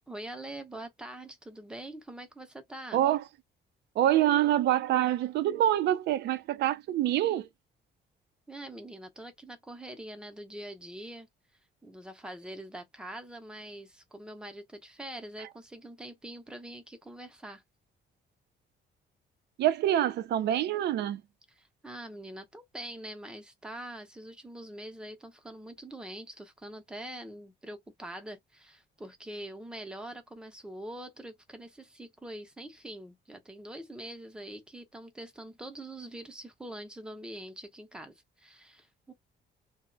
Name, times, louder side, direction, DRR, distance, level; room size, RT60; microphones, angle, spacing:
voice 1, 0.1-3.0 8.5-11.3 11.8-17.6 21.5-39.1, right 1 dB, 5° right, 0.5 m, -44 dB
voice 2, 2.9-3.2 4.0-7.5 19.6-21.2, right 12 dB, 65° right, 0.4 m, -26 dB
2.3 x 2.0 x 3.7 m
cardioid pair, 165°, 19 cm